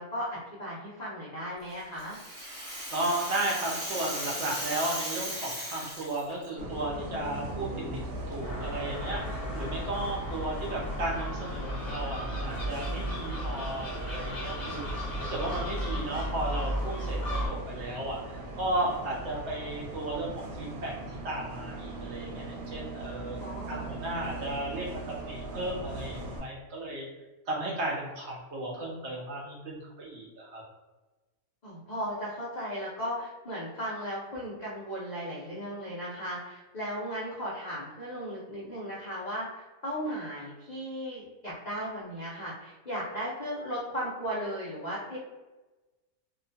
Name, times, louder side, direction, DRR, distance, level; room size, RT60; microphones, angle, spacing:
voice 1, 0.0-2.2 23.4-24.0 31.6-45.2, equal, 75° left, -7 dB, 0.3 m, -36 dB
Rattle (instrument), 1.7-6.5, equal, 35° right, 1.4 m, -36 dB
voice 2, 2.9-8.0 8.3-15.1 15.3-23.4 23.7-27.1 27.5-30.6, right 1 dB, 65° right, -3 dB, 0.8 m, -34 dB
Bus, 6.6-26.4, right 1 dB, 80° right, 1.2 m, -39 dB
Gull seagull, 8.4-17.5, equal, 35° left, 0.7 m, -35 dB
2.8 x 2.2 x 2.6 m, 1.2 s
omnidirectional pair, 1.5 m